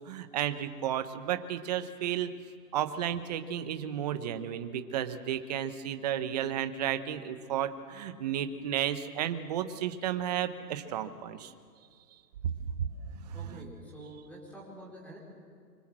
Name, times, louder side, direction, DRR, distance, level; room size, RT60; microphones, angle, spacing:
voice 1, 0.1-2.3 2.7-11.5 12.4-12.5 12.8-13.3, right 10 dB, 25° right, 10 dB, 1.0 m, -33 dB
voice 2, 13.3-15.2, right 1 dB, 5° left, -3 dB, 4.5 m, -47 dB
24.5 x 24.0 x 7.6 m, 2.1 s
hypercardioid pair, 155°, 49 cm